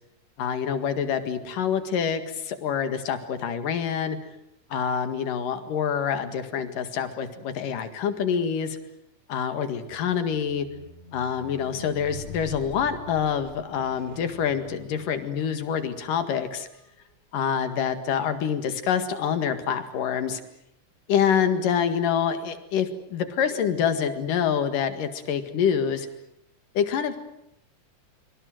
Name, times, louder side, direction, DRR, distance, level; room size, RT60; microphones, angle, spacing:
voice 1, 0.4-4.2 4.7-8.8 9.3-10.7 11.1-16.7 17.3-20.4 21.1-26.1 26.8-27.2, left 7 dB, 80° left, 9 dB, 3.6 m, -26 dB
Squeak, 9.9-16.2 17.0-17.1, left 3 dB, 20° left, 2.7 m, -44 dB
25.0 x 25.0 x 7.8 m, 0.82 s
omnidirectional pair, 3.7 m